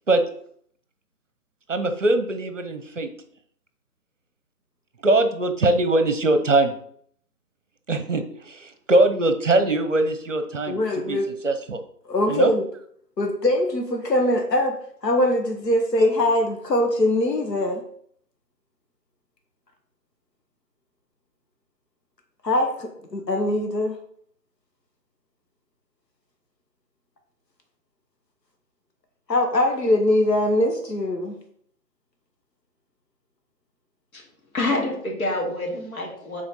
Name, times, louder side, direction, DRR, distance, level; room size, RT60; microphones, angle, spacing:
voice 1, 1.7-3.1 5.0-6.7 7.9-11.8 12.2-12.5, right 2 dB, 50° right, 9 dB, 0.8 m, -22 dB
voice 2, 10.7-11.3 12.1-12.7 13.2-14.8 15.0-17.8 22.4-24.0 29.3-31.4, left 1 dB, 85° left, 3 dB, 1.6 m, -22 dB
voice 3, 34.5-36.4, left 2 dB, 60° left, -1 dB, 2.5 m, -27 dB
5.6 x 4.3 x 5.4 m, 0.63 s
hypercardioid pair, 175°, 48 cm